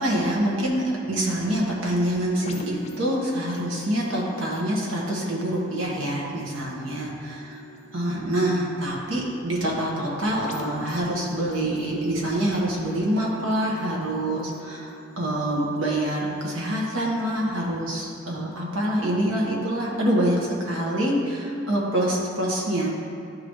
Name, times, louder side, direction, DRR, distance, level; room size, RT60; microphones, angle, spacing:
voice 1, 0.0-7.4 7.9-22.9, right 1 dB, 90° right, -3 dB, 1.4 m, -26 dB
sound 1, 2.4-20.0 20.5-20.6, left 1 dB, 35° left, 0.5 m, -45 dB
11.5 x 3.9 x 3.2 m, 2.8 s
head